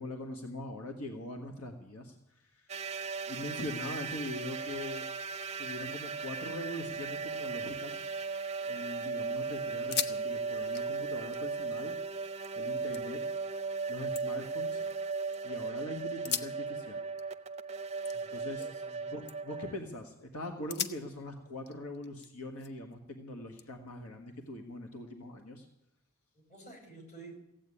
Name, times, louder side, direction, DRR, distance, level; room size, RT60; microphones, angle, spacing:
voice 1, 0.0-3.0 3.3-5.1 5.6-8.0 8.6-12.0 12.5-13.2 13.9-14.8 15.4-17.0 18.3-18.7 19.1-25.7, left 1 dB, 80° left, 4 dB, 1.6 m, -42 dB
sound 1, 2.7-19.8, right 4 dB, 30° right, 0.6 m, -37 dB
sound 2, 8.1-8.9 9.3-9.4 9.7-10.2 10.5-12.5 12.9-13.4 13.9-15.4 16.1-18.9 19.2-19.6 20.1-20.2 20.7-22.9 23.6-24.7, left 7 dB, 50° left, 0.9 m, -41 dB
voice 2, 18.1-19.1 26.3-27.4, right 3 dB, 35° left, 2 dB, 4.9 m, -52 dB
16.0 x 8.5 x 9.8 m, 0.82 s
head